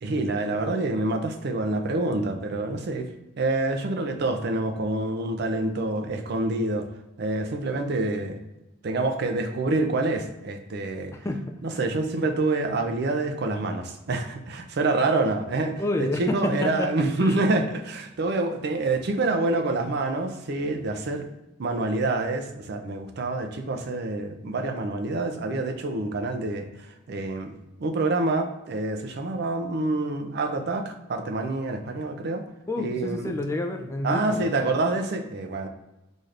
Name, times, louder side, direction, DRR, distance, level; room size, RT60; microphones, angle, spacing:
voice 1, 0.0-3.1 3.4-6.9 7.2-8.4 8.8-11.1 11.6-21.2 21.6-26.7 27.1-27.5 27.8-32.4 32.8-33.3 34.0-35.7, right 2 dB, 55° right, 6 dB, 0.4 m, -27 dB
voice 2, 11.1-11.8 15.8-16.9 17.2-17.5 32.7-34.6, left 2 dB, 15° left, 4 dB, 0.3 m, -29 dB
4.0 x 3.2 x 2.5 m, 0.98 s
head